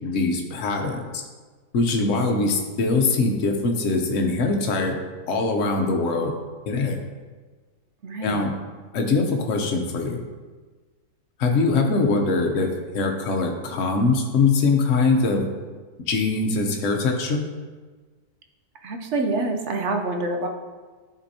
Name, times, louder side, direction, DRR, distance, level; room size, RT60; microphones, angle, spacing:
voice 1, 0.0-1.2 1.7-5.0 5.3-6.3 6.7-7.0 8.2-8.5 8.9-10.2 11.4-12.7 12.9-15.4 16.1-17.4, left 3 dB, 55° left, 2 dB, 1.1 m, -22 dB
voice 2, 2.0-2.5 8.0-8.4 11.9-12.0 18.8-20.5, right 2 dB, 60° right, 3 dB, 0.8 m, -27 dB
12.0 x 4.3 x 2.8 m, 1.4 s
omnidirectional pair, 1.6 m